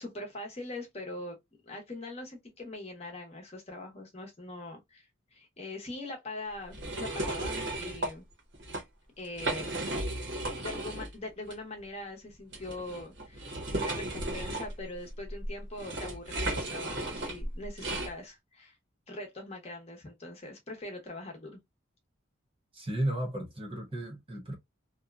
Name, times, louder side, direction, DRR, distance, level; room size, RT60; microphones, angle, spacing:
voice 1, 0.0-1.4 1.6-8.2 9.2-9.7 10.6-18.8 19.1-21.6, left 2 dB, 30° left, 0.8 m, -42 dB
sound 1, 6.7-8.1 8.5-8.8 9.2-11.1 11.5-11.6 12.5-18.1, right 1 dB, 60° right, 0.9 m, -35 dB
voice 2, 22.7-24.5, right 1 dB, 25° right, 0.9 m, -34 dB
2.7 x 2.2 x 2.2 m
head